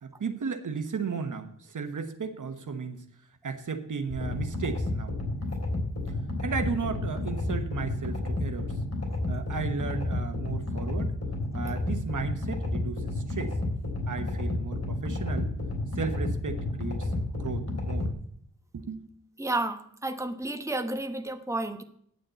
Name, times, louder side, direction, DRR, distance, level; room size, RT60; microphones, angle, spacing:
voice 1, 0.0-3.0 3.4-5.2 6.4-8.7 9.3-11.1 11.5-13.6 14.1-15.5 15.9-17.1 17.4-18.1 18.7-19.1, right 5 dB, 70° right, 8 dB, 1.2 m, -34 dB
sound 1, 4.1-18.1, left 2 dB, 50° left, 3.3 m, -31 dB
voice 2, 19.4-21.8, right 2 dB, 10° right, 7 dB, 1.0 m, -31 dB
9.5 x 6.6 x 8.1 m, 0.67 s
wide cardioid pair, 80°, 32 cm